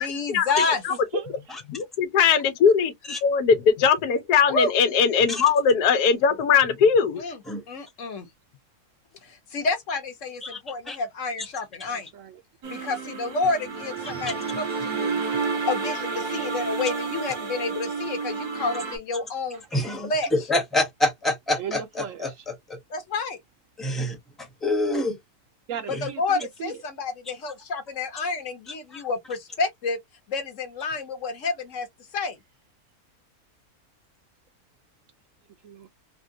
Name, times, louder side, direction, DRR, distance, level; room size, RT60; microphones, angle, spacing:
voice 1, 0.0-0.8 4.5-4.7 7.2-7.4 7.7-8.3 9.2-12.1 12.7-15.2 15.7-19.6 20.0-20.3 22.9-23.4 26.0-30.0 30.3-31.9 32.1-32.4, left 3 dB, 60° left, 1.1 m, -29 dB
voice 2, 0.9-1.3 11.9-12.4 19.5-19.6 21.6-22.4 25.7-26.8 35.6-35.9, right 9 dB, 65° right, 0.9 m, -37 dB
voice 3, 1.7-2.9 3.2-7.2, left 6 dB, 90° left, 1.2 m, -20 dB
sound 1, 12.6-19.0, right 4 dB, 80° right, 1.7 m, -30 dB
voice 4, 19.7-22.8 23.8-25.2 25.9-26.1 28.9-29.0, left 1 dB, ahead, 0.8 m, -27 dB
3.6 x 2.2 x 2.6 m
omnidirectional pair, 1.6 m